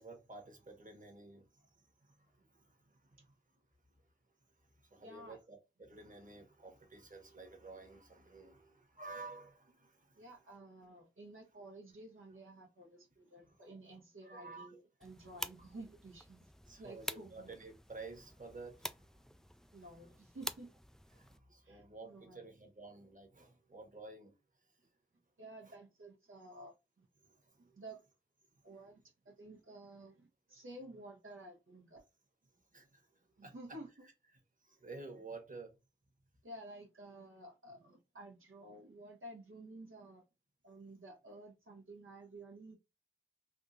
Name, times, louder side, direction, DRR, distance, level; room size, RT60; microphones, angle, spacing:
voice 1, 0.0-1.7 2.0-3.3 4.8-10.3 13.4-14.0 14.2-14.8 15.3-15.4 16.6-19.1 21.1-24.3 25.6-25.7 27.4-27.8 32.7-33.1 33.4-33.8 34.6-35.7, right 3 dB, 40° right, 1.3 m, -52 dB
voice 2, 5.0-5.4 10.2-16.5 16.8-17.5 19.7-20.7 21.6-22.4 25.4-27.1 27.6-28.0 28.6-29.0 29.2-32.0 33.4-33.9 36.4-40.2 40.6-42.7, right 2 dB, 80° right, 1.0 m, -52 dB
sound 1, 15.0-21.4, equal, ahead, 0.3 m, -48 dB
3.5 x 2.5 x 2.7 m
wide cardioid pair, 45°, 21 cm